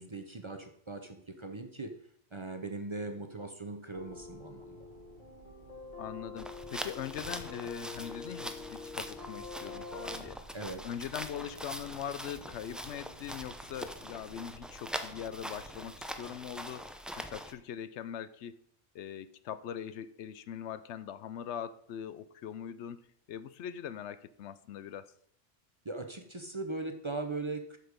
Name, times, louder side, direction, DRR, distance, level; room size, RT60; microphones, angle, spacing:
voice 1, 0.0-1.9 2.3-4.9 10.5-10.8 25.8-27.8, right 3 dB, 30° right, 6 dB, 0.6 m, -39 dB
sound 1, 3.9-10.2, left 4 dB, 40° left, 1.8 m, -46 dB
sound 2, 3.9-16.5, right 4 dB, 50° right, 1.2 m, -58 dB
voice 2, 6.0-10.5 10.8-16.9 17.2-18.6 18.9-23.0 23.3-25.1, left 9 dB, 80° left, 14 dB, 0.9 m, -41 dB
sound 3, 6.4-17.5, equal, ahead, 0.3 m, -43 dB
8.2 x 6.8 x 5.1 m, 0.64 s
omnidirectional pair, 1.2 m